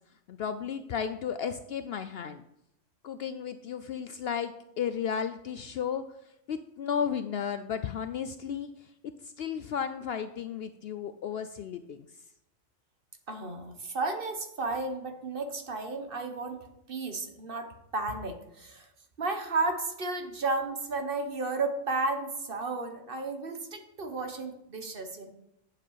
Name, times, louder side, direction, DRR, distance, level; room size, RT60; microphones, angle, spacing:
voice 1, 0.3-2.4 3.0-6.1 6.5-12.1, left 7 dB, 65° left, 10 dB, 0.7 m, -34 dB
voice 2, 13.3-18.9 19.2-25.3, right 3 dB, 45° right, 6 dB, 1.3 m, -33 dB
8.6 x 7.4 x 5.6 m, 0.81 s
omnidirectional pair, 1.3 m